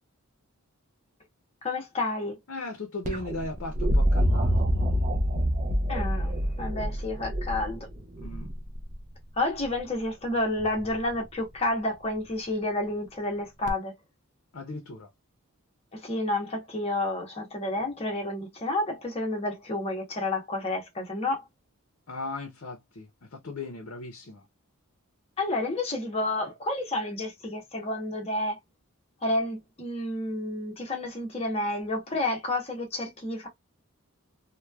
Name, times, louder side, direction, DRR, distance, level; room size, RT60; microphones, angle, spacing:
voice 1, 1.6-2.4 5.9-7.9 9.4-13.9 15.9-21.4 25.4-28.6 29.2-33.5, left 2 dB, 30° left, 0.9 m, -30 dB
voice 2, 2.5-4.5 8.2-8.5 14.5-15.1 22.1-24.4, left 2 dB, 65° left, 0.6 m, -37 dB
sound 1, 3.0-9.0 10.6-11.1 13.7-13.8, equal, 35° right, 0.5 m, -26 dB
3.0 x 2.2 x 2.3 m
head